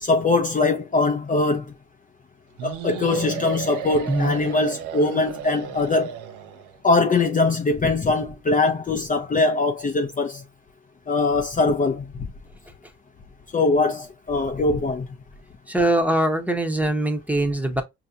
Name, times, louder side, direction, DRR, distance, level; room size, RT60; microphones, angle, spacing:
voice 1, 0.0-1.7 2.6-6.1 6.8-10.4 11.1-12.0 13.5-15.1, left 3 dB, 25° left, 0.6 m, -22 dB
sound 1, 2.6-6.8, right 8 dB, 90° right, 0.6 m, -34 dB
voice 2, 15.7-17.8, right 1 dB, 5° right, 0.9 m, -22 dB
5.4 x 2.8 x 2.4 m
cardioid pair, 90°, 30 cm